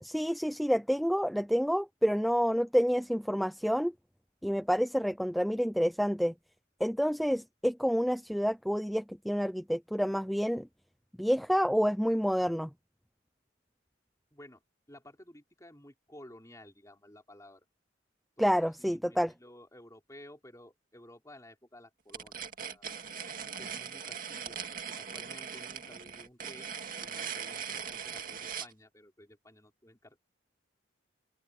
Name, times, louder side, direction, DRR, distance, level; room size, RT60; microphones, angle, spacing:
voice 1, 0.0-3.9 4.4-6.3 6.8-10.7 11.2-12.7 18.4-19.3, equal, ahead, 0.3 m, -28 dB
voice 2, 14.3-14.6 14.9-17.7 18.4-22.4 22.7-23.0 23.6-24.6 24.9-26.7 27.0-30.2, left 1 dB, 15° left, 5.3 m, -54 dB
sound 1, 22.1-28.7, right 7 dB, 45° right, 2.3 m, -40 dB
open air
head